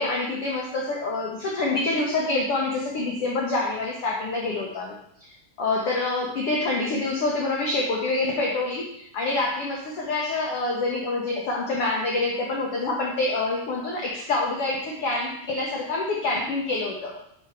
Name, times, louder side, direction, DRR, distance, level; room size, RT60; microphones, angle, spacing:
voice 1, 0.0-5.3 5.6-17.3, left 2 dB, 75° left, -2 dB, 1.3 m, -26 dB
6.6 x 4.5 x 5.8 m, 0.75 s
omnidirectional pair, 4.1 m